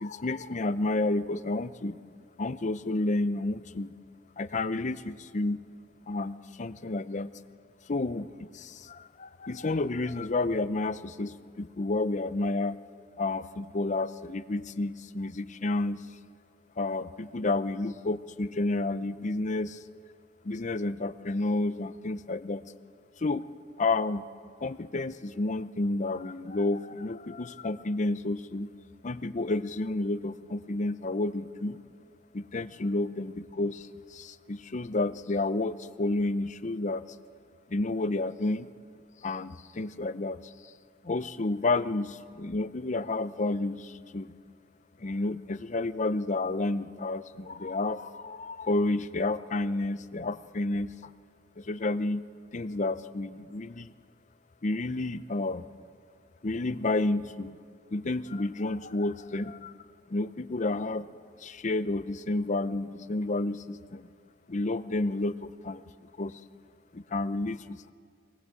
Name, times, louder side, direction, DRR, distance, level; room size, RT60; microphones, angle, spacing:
voice 1, 0.0-2.0 2.4-3.9 4.4-5.6 6.1-7.3 7.9-12.8 13.2-16.0 16.8-19.8 20.4-22.6 23.2-23.5 23.8-24.2 24.6-28.7 29.0-31.8 32.3-37.0 37.7-38.7 39.2-40.7 41.0-44.4 45.0-50.9 51.6-52.2 52.5-53.9 54.6-55.7 56.4-57.6 57.9-59.7 60.1-61.1 61.4-64.1 64.5-65.8 66.2-66.4 66.9-67.9, left 2 dB, 40° left, 13 dB, 0.6 m, -30 dB
22.5 x 18.5 x 8.4 m, 2.1 s
head